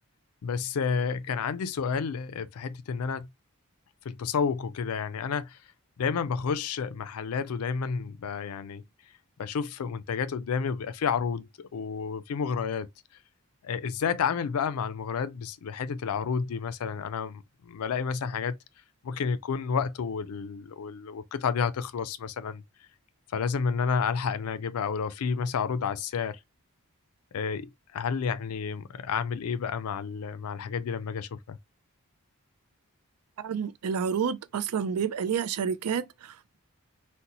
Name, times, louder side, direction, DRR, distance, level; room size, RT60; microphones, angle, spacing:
voice 1, 0.4-3.3 4.1-5.6 6.0-8.8 9.4-12.9 13.6-18.6 19.0-22.6 23.3-26.4 27.3-31.6, left 6 dB, 75° left, 0.4 m, -30 dB
voice 2, 33.4-36.6, right 7 dB, 85° right, 0.4 m, -30 dB
3.9 x 2.1 x 2.8 m
head